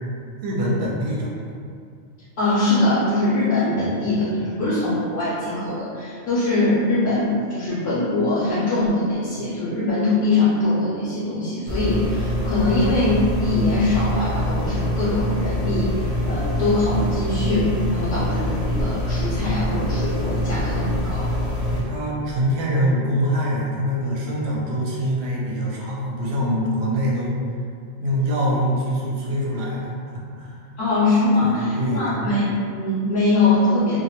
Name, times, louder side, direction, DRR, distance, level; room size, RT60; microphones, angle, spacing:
voice 1, 0.4-1.3 3.9-4.2 21.7-27.3 28.0-29.9 30.4-30.6 31.4-32.2, equal, 70° right, -4 dB, 0.8 m, -24 dB
voice 2, 2.4-15.9 16.3-21.3 30.8-34.0, left 2 dB, 65° left, -9 dB, 0.8 m, -22 dB
sound 1, 11.7-21.8, left 1 dB, 15° right, 0.5 m, -25 dB
2.2 x 2.0 x 2.8 m, 2.3 s
omnidirectional pair, 1.2 m